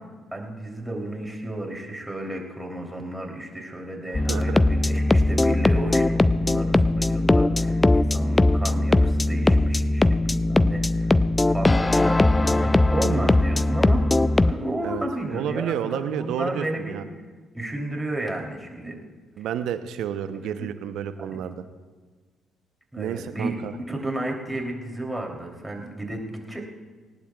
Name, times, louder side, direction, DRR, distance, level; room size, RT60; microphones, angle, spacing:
voice 1, 0.3-11.2 11.5-14.0 14.4-17.0 17.5-19.0 20.4-20.7 21.3-21.4 22.9-23.6 23.9-26.7, right 1 dB, 10° right, 0 dB, 3.2 m, -32 dB
sound 1, 4.1-14.5, left 2 dB, 20° left, 0.4 m, -20 dB
voice 2, 4.3-4.6 14.8-17.0 19.4-21.6 23.0-23.7, right 9 dB, 65° right, 11 dB, 0.8 m, -30 dB
19.5 x 18.5 x 2.4 m, 1.4 s
hypercardioid pair, 45°, 0 cm